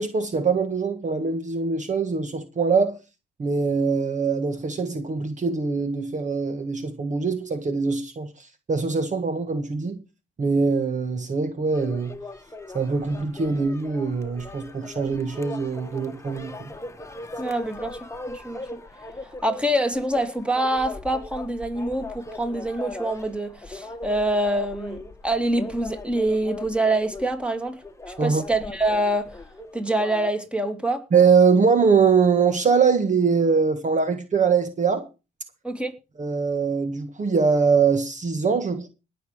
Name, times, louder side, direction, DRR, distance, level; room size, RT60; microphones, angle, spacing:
voice 1, 0.0-3.0 3.4-10.0 10.4-12.2 12.7-16.7 28.2-28.4 31.1-35.1 36.2-38.9, right 5 dB, 40° right, 1.6 m, -22 dB
sound 1, 11.7-30.3, left 2 dB, 15° left, 1.6 m, -39 dB
voice 2, 17.4-18.0 18.3-18.6 19.2-27.8 28.1-29.3 29.7-31.0 35.6-35.9, right 1 dB, 5° right, 2.7 m, -25 dB
19.0 x 6.9 x 5.1 m
cardioid pair, 90°, 20 cm